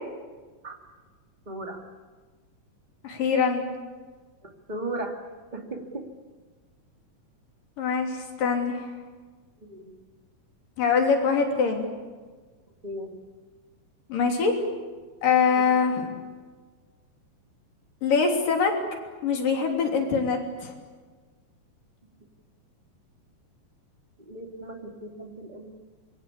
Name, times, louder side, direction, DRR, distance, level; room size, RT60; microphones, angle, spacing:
voice 1, 1.5-1.8 4.4-5.2 5.5-6.1 9.6-9.9 12.8-13.1 24.2-25.7, right 2 dB, 15° right, 2 dB, 2.5 m, -36 dB
voice 2, 3.0-3.7 7.8-8.8 10.8-11.9 14.1-14.5 15.2-16.2 18.0-18.7 19.2-20.7, left 5 dB, 75° left, 2 dB, 4.9 m, -23 dB
26.5 x 23.5 x 8.5 m, 1.4 s
omnidirectional pair, 4.0 m